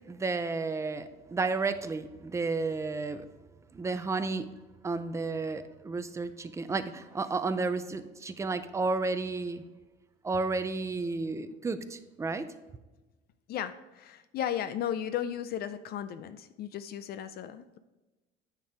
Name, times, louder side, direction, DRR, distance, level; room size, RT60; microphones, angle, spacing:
voice 1, 0.1-3.3 3.7-4.5 4.8-9.6 10.2-12.5, right 3 dB, 15° right, 10 dB, 0.4 m, -32 dB
voice 2, 13.5-17.8, left 10 dB, 55° left, 12 dB, 0.4 m, -35 dB
9.3 x 4.5 x 5.0 m, 1.1 s
cardioid pair, 150°, 19 cm